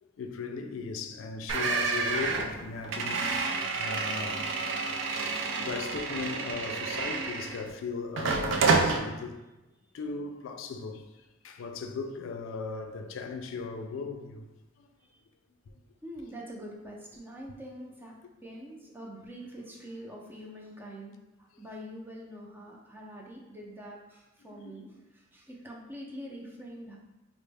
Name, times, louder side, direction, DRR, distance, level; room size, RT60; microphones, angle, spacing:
voice 1, 0.0-4.5 5.6-9.4 9.9-11.0 11.4-14.5 14.8-14.9 15.7-15.8 24.4-24.8, left 4 dB, 80° left, 0.3 m, -37 dB
sound 1, 1.5-7.7 8.2-9.0, right 4 dB, 70° right, 0.4 m, -29 dB
voice 2, 16.0-18.2 18.4-27.0, equal, 10° right, 0.4 m, -45 dB
4.1 x 2.0 x 3.3 m
head